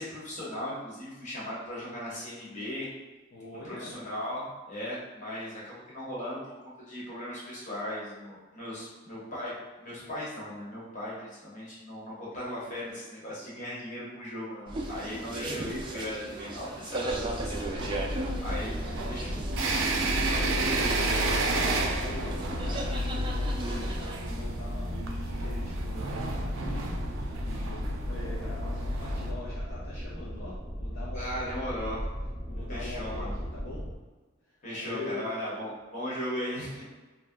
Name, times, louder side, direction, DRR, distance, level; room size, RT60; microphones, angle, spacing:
voice 1, 0.0-2.9 3.6-9.5 9.8-18.0 18.4-19.4 31.1-32.1 32.7-33.3 34.6-36.8, equal, 40° left, -7 dB, 1.1 m, -37 dB
voice 2, 3.3-4.0 18.9-19.3 20.1-21.1 22.0-26.8 27.1-31.8 32.5-33.9 34.7-35.3, left 3 dB, 65° left, -7 dB, 0.6 m, -44 dB
sound 1, 14.7-24.2, right 2 dB, 25° right, 0.3 m, -37 dB
sound 2, 17.1-33.9, equal, 25° left, 0.6 m, -37 dB
sound 3, 17.8-29.3, right 2 dB, 90° right, 0.4 m, -31 dB
2.7 x 2.1 x 3.5 m, 1.2 s
head